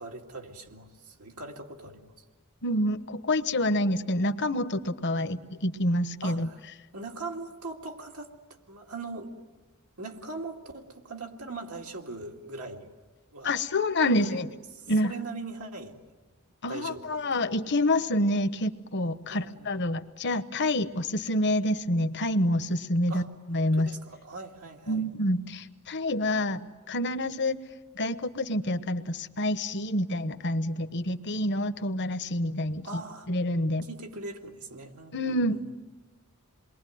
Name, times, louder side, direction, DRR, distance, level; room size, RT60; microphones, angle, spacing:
voice 1, 0.0-2.2 5.2-5.3 6.2-6.6 6.9-8.3 8.7-9.3 10.0-12.9 13.3-13.6 14.2-14.4 14.7-16.0 16.7-17.2 19.3-19.9 23.1-23.3 23.7-25.1 32.8-33.3 33.8-35.6, right 3 dB, 85° right, 1 dB, 2.4 m, -41 dB
voice 2, 2.6-6.5 13.4-14.5 14.9-15.1 16.6-23.2 23.5-23.9 24.9-27.6 28.0-32.8 33.3-33.9 35.1-35.6, left 1 dB, 55° left, 11 dB, 1.0 m, -27 dB
28.0 x 22.0 x 9.3 m, 1.3 s
head